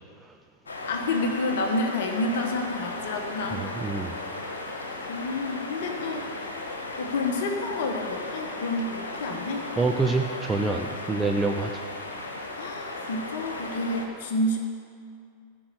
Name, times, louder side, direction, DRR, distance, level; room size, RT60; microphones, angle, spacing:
sound 1, 0.7-14.1, left 2 dB, 70° left, 1.6 m, -36 dB
voice 1, 0.9-3.6 5.1-6.3 7.0-9.7 12.5-14.6, left 2 dB, 55° left, 3 dB, 1.2 m, -29 dB
voice 2, 3.8-4.1 9.8-11.7, right 3 dB, 15° right, 4 dB, 0.6 m, -26 dB
14.0 x 5.5 x 8.5 m, 2.3 s
figure-of-eight pair, 90°, 0 cm